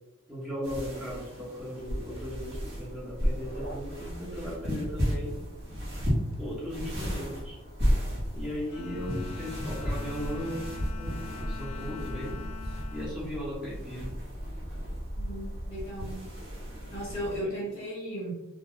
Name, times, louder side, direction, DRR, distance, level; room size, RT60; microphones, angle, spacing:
voice 1, 0.3-5.4 6.4-7.6 8.3-10.6 11.0-11.2 11.5-12.4 12.9-14.1 17.4-17.5, equal, 5° right, -7 dB, 0.9 m, -37 dB
sound 1, 0.6-17.4, equal, 50° right, 1.0 m, -34 dB
sound 2, 1.9-17.4, equal, 80° right, 0.5 m, -42 dB
Bowed string instrument, 8.7-14.2, left 8 dB, 85° left, 0.3 m, -45 dB
voice 2, 15.2-16.2 16.9-18.3, equal, 25° left, -7 dB, 1.2 m, -36 dB
2.3 x 2.2 x 3.0 m, 0.97 s
head